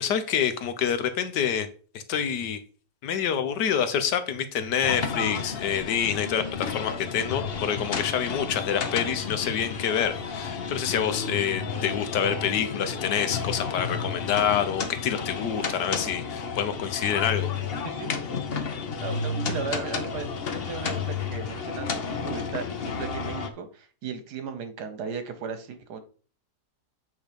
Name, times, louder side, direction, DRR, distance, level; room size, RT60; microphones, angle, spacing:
voice 1, 0.0-1.7 1.9-2.6 3.0-17.9, left 8 dB, 90° left, 10 dB, 1.5 m, -27 dB
sound 1, 4.8-23.5, left 5 dB, 45° left, 0.9 m, -32 dB
voice 2, 17.8-18.2 19.0-20.3 20.7-26.0, right 5 dB, 75° right, 9 dB, 1.6 m, -36 dB
8.3 x 3.6 x 5.1 m, 0.40 s
omnidirectional pair, 1.8 m